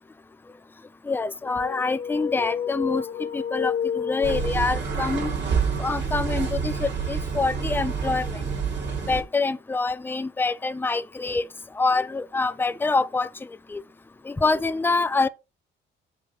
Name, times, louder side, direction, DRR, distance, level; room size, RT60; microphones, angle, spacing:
voice 1, 1.1-3.0 3.3-5.3 5.8-8.3 9.1-11.4 11.8-13.3 13.7-13.8 14.3-15.3, left 3 dB, 10° left, 0.5 m, -25 dB
sound 1, 1.4-5.0, left 8 dB, 60° left, 1.4 m, -30 dB
sound 2, 4.2-9.2, right 6 dB, 60° right, 3.0 m, -27 dB
7.4 x 5.3 x 4.3 m
cardioid pair, 90°, 20 cm